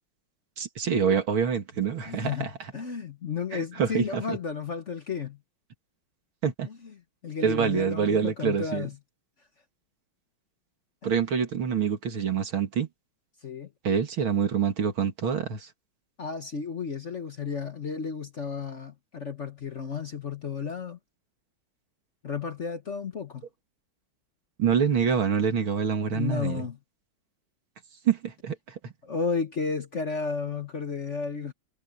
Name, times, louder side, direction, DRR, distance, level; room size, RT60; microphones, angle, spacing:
voice 1, 0.6-2.7 3.5-4.4 6.4-6.7 7.4-8.9 11.0-12.9 13.8-15.7 24.6-26.6 28.0-28.9, right 7 dB, 75° right, 3.0 m, -26 dB
voice 2, 2.1-5.4 6.7-6.8 7.2-8.9 11.0-11.1 13.4-13.7 16.2-21.0 22.2-23.5 26.1-26.8 29.0-31.5, left 5 dB, 40° left, 1.2 m, -33 dB
omnidirectional pair, 2.3 m